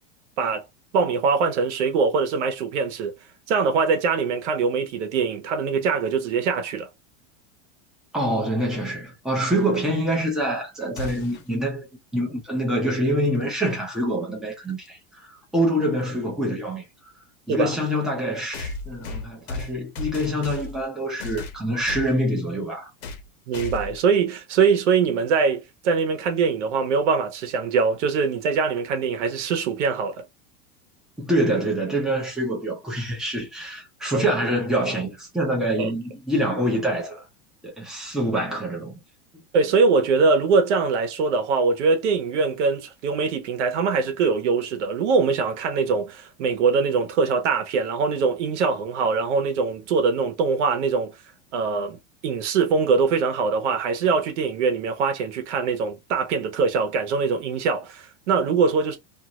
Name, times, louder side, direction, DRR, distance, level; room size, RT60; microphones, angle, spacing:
voice 1, 0.9-3.1 3.5-6.9 17.5-17.7 23.5-30.2 34.1-34.3 35.8-35.9 39.5-51.1 51.5-59.0, right 5 dB, 70° right, 1.0 m, -22 dB
voice 2, 8.1-11.9 12.1-16.8 17.5-22.9 31.2-37.2 37.6-39.0, right 1 dB, ahead, 0.6 m, -25 dB
sound 1, 11.0-11.5 13.6-13.7 14.8-14.9 18.5-20.8 21.2-22.1 23.0-23.3 23.5-24.0, left 3 dB, 60° left, 1.0 m, -34 dB
2.7 x 2.5 x 2.9 m
supercardioid pair, 175°, 37 cm